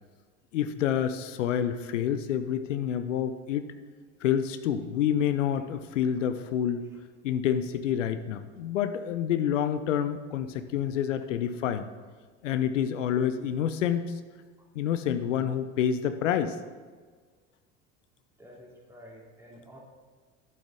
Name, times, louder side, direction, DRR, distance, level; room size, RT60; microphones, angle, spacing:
voice 1, 0.5-3.7 4.2-6.8 7.2-11.8 12.4-14.1 14.7-16.6, left 9 dB, 85° left, 10 dB, 0.6 m, -28 dB
voice 2, 18.4-19.8, equal, 5° right, -4 dB, 3.1 m, -50 dB
11.0 x 7.6 x 3.7 m, 1.5 s
hypercardioid pair, 75°, 36 cm